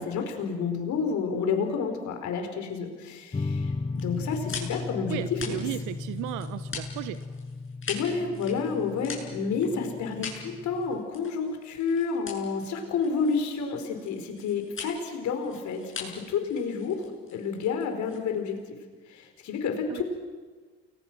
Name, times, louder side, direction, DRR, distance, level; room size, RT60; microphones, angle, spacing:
voice 1, 0.0-5.5 7.9-17.1 17.3-18.6 19.1-20.0, left 5 dB, 60° left, 5 dB, 4.8 m, -30 dB
sound 1, 3.3-11.0, left 3 dB, 15° left, 0.9 m, -36 dB
sound 2, 3.9-18.6, left 5 dB, 40° left, 7.5 m, -42 dB
voice 2, 5.1-7.2 19.9-20.0, right 15 dB, 70° right, 14 dB, 0.9 m, -35 dB
29.0 x 22.0 x 6.2 m, 1.5 s
hypercardioid pair, 60°, 32 cm